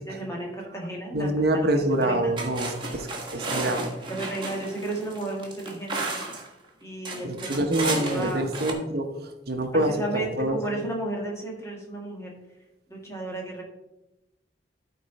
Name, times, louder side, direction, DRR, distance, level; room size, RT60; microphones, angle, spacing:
voice 1, 0.0-1.7 2.0-2.3 4.1-6.2 6.8-7.6 8.0-8.5 9.7-12.3 12.9-13.6, right 1 dB, 15° left, -1 dB, 2.0 m, -33 dB
voice 2, 1.1-3.9 7.2-9.9 10.4-10.6, right 1 dB, 60° right, 6 dB, 0.9 m, -26 dB
sound 1, 1.9-2.0 2.4-6.5 7.0-8.7, right 2 dB, 30° right, 1.5 m, -33 dB
13.0 x 4.5 x 4.1 m, 0.97 s
head